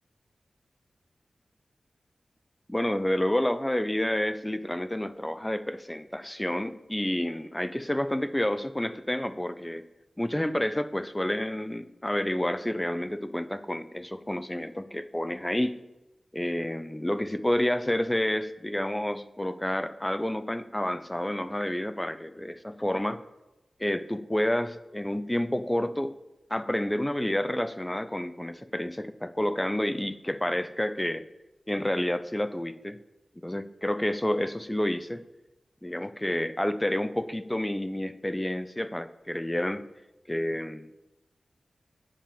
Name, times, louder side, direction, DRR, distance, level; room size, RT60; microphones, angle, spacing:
voice 1, 2.7-9.8 10.2-15.8 16.3-23.2 23.8-26.2 26.5-31.3 31.7-33.0 33.4-35.2 35.8-39.9 40.3-41.0, left 1 dB, 10° left, 13 dB, 0.6 m, -29 dB
10.5 x 7.4 x 7.0 m, 0.98 s
wide cardioid pair, 75°, 0 cm